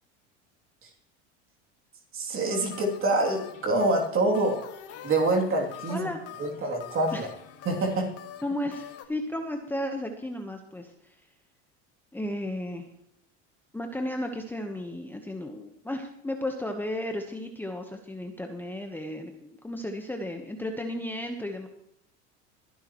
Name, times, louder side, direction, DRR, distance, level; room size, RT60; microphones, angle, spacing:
voice 1, 2.1-4.6 5.0-6.1 6.4-7.3 7.6-8.1, right 2 dB, 40° right, 0 dB, 3.0 m, -26 dB
sound 1, 2.5-9.0, left 9 dB, 45° left, 1.7 m, -45 dB
voice 2, 5.9-6.2 7.1-7.2 8.4-11.2 12.1-12.9 13.7-21.7, left 1 dB, 5° left, 4 dB, 1.2 m, -34 dB
21.5 x 10.5 x 3.1 m, 0.74 s
supercardioid pair, 110°, 34 cm